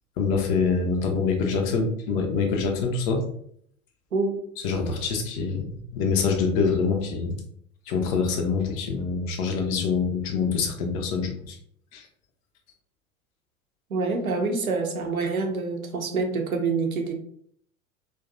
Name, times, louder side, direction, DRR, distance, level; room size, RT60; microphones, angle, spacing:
voice 1, 0.2-3.2 4.6-7.3 7.9-11.6 11.9-12.0, left 5 dB, 25° left, 0.3 m, -25 dB
voice 2, 13.9-17.1, right 4 dB, 85° right, 0.6 m, -26 dB
2.5 x 2.2 x 2.4 m
figure-of-eight pair, 85°, 41 cm